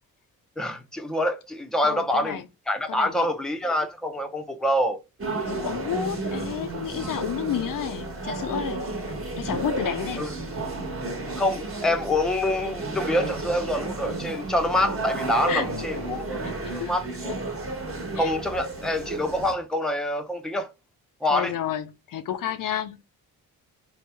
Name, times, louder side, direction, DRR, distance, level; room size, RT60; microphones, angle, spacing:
voice 1, 0.6-2.4 2.7-5.0 10.2-10.3 11.4-17.3 18.2-20.7 21.2-21.5, left 1 dB, ahead, 0.6 m, -26 dB
voice 2, 1.8-2.4 2.9-3.3 5.5-10.3 15.5-15.7 16.4-16.9 17.3-17.4 18.1-18.3 21.3-23.0, left 10 dB, 60° left, 0.4 m, -31 dB
sound 1, 5.2-19.5, right 2 dB, 35° right, 1.2 m, -32 dB
3.1 x 2.2 x 3.2 m
cardioid pair, 65°, 37 cm